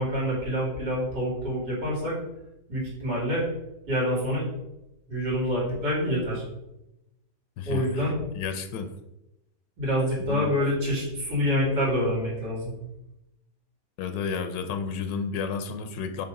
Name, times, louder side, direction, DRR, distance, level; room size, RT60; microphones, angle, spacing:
voice 1, 0.0-2.2 2.7-3.4 3.9-4.5 5.1-6.4 7.7-8.1 9.8-12.7, equal, 85° right, -6 dB, 3.4 m, -26 dB
voice 2, 7.6-8.1 8.3-8.9 10.2-10.5 14.0-16.3, left 6 dB, 80° left, 8 dB, 1.3 m, -31 dB
7.0 x 3.0 x 5.3 m, 0.90 s
omnidirectional pair, 1.9 m